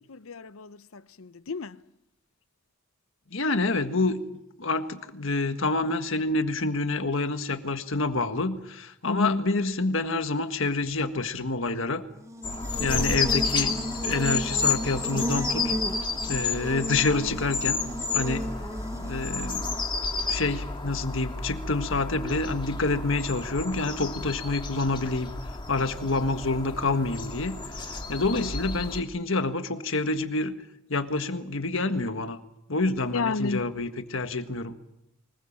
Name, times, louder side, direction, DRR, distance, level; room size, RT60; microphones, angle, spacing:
voice 1, 0.1-1.8 9.1-9.4 33.1-33.6, left 3 dB, 85° left, 0.8 m, -31 dB
voice 2, 3.3-4.2 4.6-12.0 12.8-13.7 14.0-15.7 16.3-17.8 18.1-18.5 19.0-19.7 20.3-25.3 25.7-27.6 28.1-30.5 30.9-32.4 32.7-34.7, left 3 dB, 70° left, 1.7 m, -27 dB
Buzz, 12.2-20.3, equal, 15° right, 0.9 m, -35 dB
sound 1, 12.4-29.0, left 4 dB, 25° left, 2.1 m, -31 dB
24.5 x 21.0 x 7.4 m
head